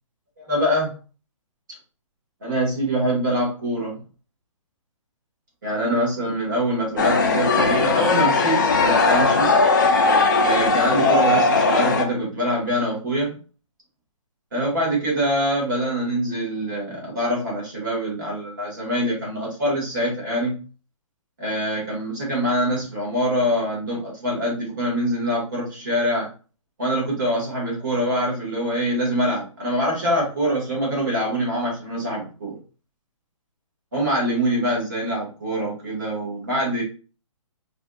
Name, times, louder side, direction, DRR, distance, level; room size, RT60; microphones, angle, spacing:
voice 1, 0.4-0.9 2.4-4.0 5.6-9.5 10.4-13.4 14.5-20.6 21.4-26.3 26.8-32.6 33.9-36.8, equal, 35° right, -4 dB, 1.7 m, -24 dB
sound 1, 7.0-12.0, left 3 dB, 35° left, 0.4 m, -18 dB
4.9 x 2.4 x 2.3 m, 0.35 s
hypercardioid pair, 175°, 18 cm